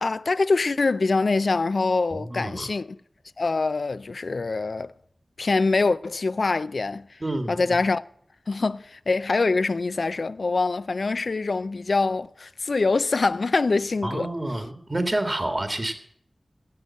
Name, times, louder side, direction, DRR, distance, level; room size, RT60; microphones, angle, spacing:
voice 1, 0.0-3.0 3.4-4.9 5.4-7.0 7.5-8.0 8.5-14.3, left 3 dB, 70° left, 0.4 m, -24 dB
voice 2, 2.1-2.7 7.2-7.7 14.0-15.9, right 1 dB, 35° right, 1.8 m, -28 dB
11.5 x 8.0 x 7.4 m
wide cardioid pair, 65°, 0 cm